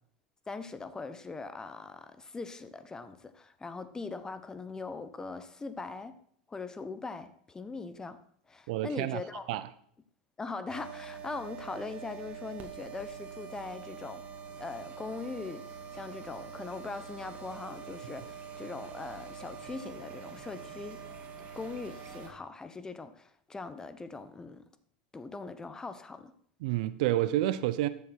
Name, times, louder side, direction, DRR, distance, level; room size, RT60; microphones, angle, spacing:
voice 1, 0.5-6.2 6.5-8.2 8.5-9.6 10.4-14.2 14.6-15.6 15.9-21.0 21.6-24.6 25.1-26.3, left 4 dB, 15° left, 0.9 m, -41 dB
voice 2, 8.7-9.2 9.5-9.6 26.6-27.9, right 14 dB, 65° right, 0.6 m, -29 dB
sound 1, 10.7-22.3, right 7 dB, 40° right, 2.2 m, -45 dB
13.0 x 7.3 x 4.4 m
hypercardioid pair, 100°, 4 cm